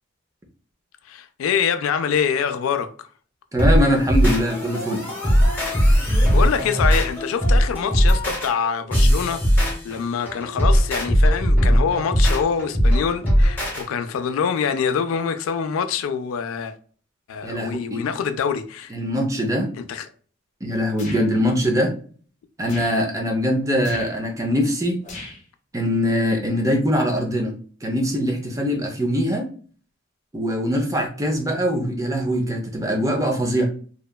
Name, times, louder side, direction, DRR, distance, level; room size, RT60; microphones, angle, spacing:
voice 1, 1.1-2.9 5.9-16.7 17.3-18.9 19.8-20.1, left 7 dB, 85° left, 0.3 m, -25 dB
voice 2, 3.5-5.0 17.4-18.0 18.9-19.7 20.6-21.9 22.6-25.0 25.7-27.5 27.8-29.5 30.3-33.7, equal, 15° right, 0.4 m, -22 dB
sound 1, 3.6-13.8, equal, 10° left, 1.0 m, -19 dB
sound 2, 21.0-21.3 22.6-23.0 23.8-24.1 25.0-25.4, left 2 dB, 35° left, 0.7 m, -37 dB
2.8 x 2.2 x 2.2 m
head